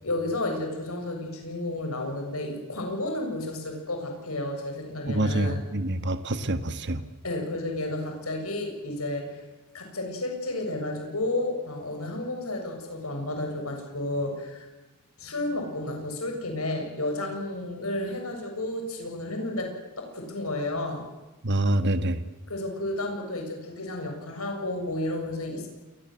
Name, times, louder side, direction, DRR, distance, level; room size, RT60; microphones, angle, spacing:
voice 1, 0.0-5.6 7.2-9.4 9.7-14.7 15.2-19.7 20.0-21.0 22.5-25.7, left 1 dB, 80° left, 3 dB, 7.2 m, -32 dB
voice 2, 5.1-7.1 21.4-22.2, right 1 dB, 55° right, 11 dB, 1.5 m, -26 dB
27.5 x 21.5 x 7.9 m, 1.1 s
head